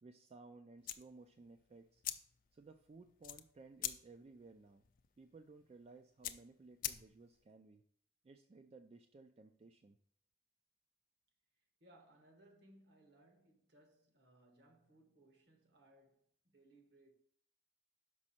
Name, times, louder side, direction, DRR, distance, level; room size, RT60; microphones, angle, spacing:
voice 1, 0.0-2.0 2.5-4.8 5.2-7.8 8.2-10.0, right 3 dB, 35° right, 0.3 m, -58 dB
sound 1, 0.8-7.4, left 12 dB, 45° left, 0.4 m, -47 dB
voice 2, 11.8-17.1, right 1 dB, 60° right, 1.2 m, -66 dB
6.0 x 5.3 x 4.2 m
head